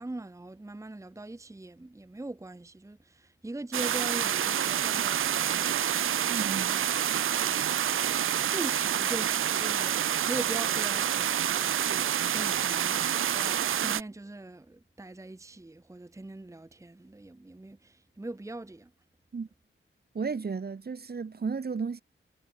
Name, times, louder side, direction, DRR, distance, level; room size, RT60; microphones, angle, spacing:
voice 1, 0.0-6.6 7.3-7.9 8.5-11.4 11.8-18.9, right 2 dB, 15° right, 1.0 m, -41 dB
sound 1, 3.7-14.0, right 10 dB, 75° right, 0.5 m, -28 dB
voice 2, 6.3-6.9 19.3-19.5 20.1-22.0, right 5 dB, 50° right, 1.9 m, -34 dB
wide cardioid pair, 120°, 21 cm